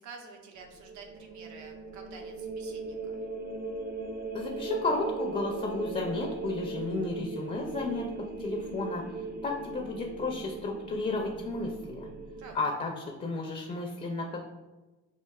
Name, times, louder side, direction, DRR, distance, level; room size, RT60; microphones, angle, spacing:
voice 1, 0.0-3.2 12.4-12.6, right 4 dB, 75° right, 3 dB, 0.7 m, -49 dB
sound 1, 0.6-12.6, right 3 dB, 35° right, 0.5 m, -38 dB
voice 2, 4.3-8.0 8.4-12.1 12.5-14.4, left 3 dB, 25° left, 1 dB, 0.4 m, -33 dB
4.7 x 2.4 x 2.3 m, 1.1 s
cardioid pair, 90°, 30 cm